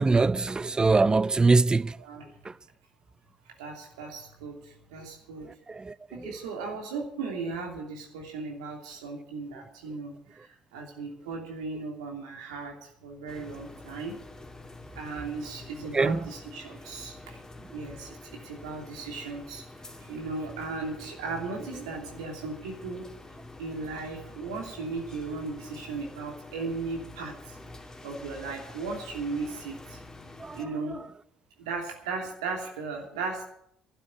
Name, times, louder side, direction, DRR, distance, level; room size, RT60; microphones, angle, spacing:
voice 1, 0.0-2.0 2.4-2.5 5.7-5.9 6.2-6.3 15.9-16.2 30.4-30.6, right 3 dB, 25° right, 0.6 m, -23 dB
voice 2, 2.0-2.4 3.6-5.5 6.1-14.2 15.0-17.4 17.7-18.2 18.4-23.0 23.6-27.6 28.0-30.0 30.5-31.0 31.6-33.5, right 4 dB, 85° right, 2.9 m, -37 dB
sound 1, 13.3-30.7, left 2 dB, 20° left, 2.5 m, -47 dB
12.0 x 9.1 x 9.4 m
hypercardioid pair, 55°, 3 cm